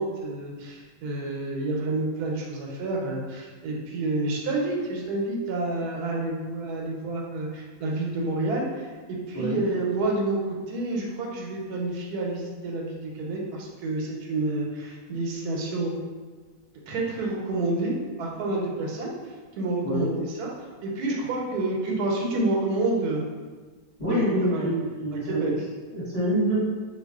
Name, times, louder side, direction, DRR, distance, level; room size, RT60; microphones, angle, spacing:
voice 1, 0.0-16.0 16.9-19.1 19.6-20.5 20.8-23.2 24.0-24.7 25.1-25.5, right 2 dB, 85° right, -1 dB, 1.1 m, -29 dB
voice 2, 24.0-25.6 25.9-26.6, equal, 30° left, -12 dB, 1.0 m, -26 dB
2.4 x 2.3 x 3.4 m, 1.4 s
omnidirectional pair, 1.6 m